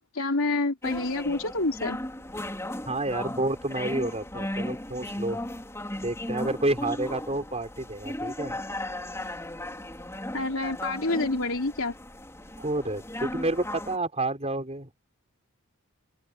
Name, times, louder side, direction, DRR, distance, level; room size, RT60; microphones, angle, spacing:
voice 1, 0.2-2.0 10.3-11.9, left 2 dB, 65° left, 3.6 m, -27 dB
sound 1, 0.8-14.0, left 1 dB, 15° left, 4.3 m, -36 dB
voice 2, 2.9-5.4 6.0-8.6 12.6-14.9, right 2 dB, 30° right, 5.5 m, -29 dB
open air
head